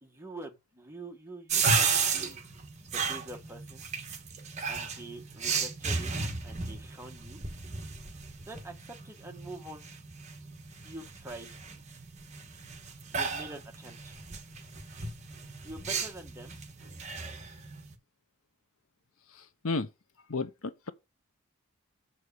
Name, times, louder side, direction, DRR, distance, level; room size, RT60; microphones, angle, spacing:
voice 1, 0.0-2.4 2.8-3.8 4.7-6.1 6.4-7.4 8.4-9.8 10.8-11.6 13.1-14.2 15.6-16.6, right 2 dB, 10° right, 1.5 m, -45 dB
sound 1, 1.5-17.9, right 5 dB, 30° right, 1.4 m, -34 dB
voice 2, 20.3-20.9, left 3 dB, 70° left, 0.9 m, -32 dB
7.2 x 4.7 x 6.9 m
head